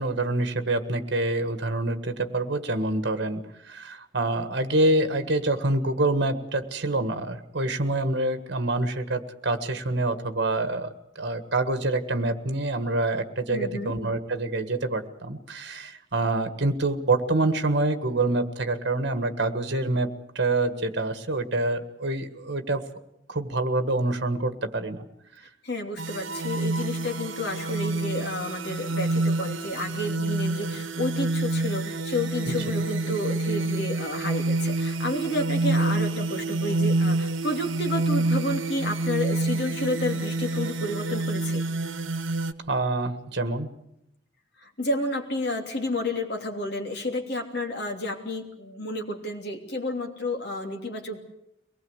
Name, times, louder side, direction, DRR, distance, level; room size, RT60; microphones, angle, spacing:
voice 1, 0.0-3.4 3.7-10.9 11.1-22.8 23.3-25.0 32.5-32.6 42.7-43.7, right 2 dB, 60° right, 9 dB, 1.6 m, -26 dB
voice 2, 13.5-13.9 25.6-41.6 44.6-51.2, left 1 dB, 55° left, 3 dB, 3.0 m, -31 dB
sound 1, 26.0-42.5, right 2 dB, 80° right, 1.1 m, -27 dB
23.5 x 19.5 x 8.1 m, 0.81 s
head